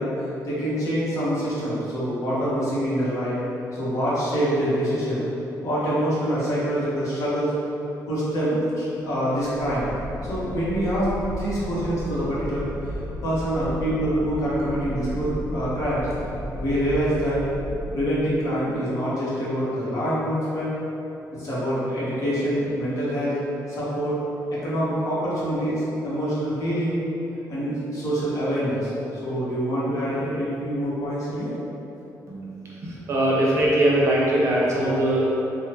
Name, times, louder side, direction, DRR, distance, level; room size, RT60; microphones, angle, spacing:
voice 1, 0.0-3.4 3.7-5.2 5.6-7.5 8.1-9.9 10.3-11.1 11.4-12.9 13.2-16.1 16.5-17.4 17.9-20.7 21.3-23.3 23.7-24.2 24.5-27.0 27.5-28.9 29.2-31.5, equal, 55° left, -9 dB, 1.0 m, -25 dB
sound 1, 9.6-18.6, equal, 40° left, 0.4 m, -34 dB
voice 2, 32.8-35.2, right 1 dB, 50° right, -5 dB, 0.6 m, -21 dB
3.6 x 2.0 x 2.9 m, 2.9 s
cardioid pair, 140°, 7 cm